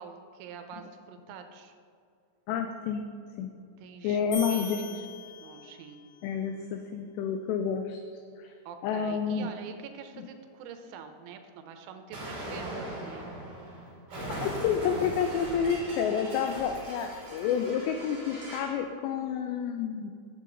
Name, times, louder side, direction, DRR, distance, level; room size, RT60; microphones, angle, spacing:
voice 1, 0.0-1.8 3.8-5.1 5.4-6.0 8.7-13.3, right 6 dB, 85° right, 7 dB, 3.2 m, -45 dB
voice 2, 2.5-3.0 3.4-3.5 4.0-4.8 6.2-8.0 8.4-8.5 8.8-9.5 14.3-20.1, left 7 dB, 90° left, 5 dB, 2.4 m, -29 dB
sound 1, 4.3-5.9, left 3 dB, 60° left, 3.4 m, -41 dB
Explosion, 12.1-18.8, right 1 dB, 45° right, 1.3 m, -39 dB
9.4 x 7.8 x 3.8 m, 2.3 s
omnidirectional pair, 5.5 m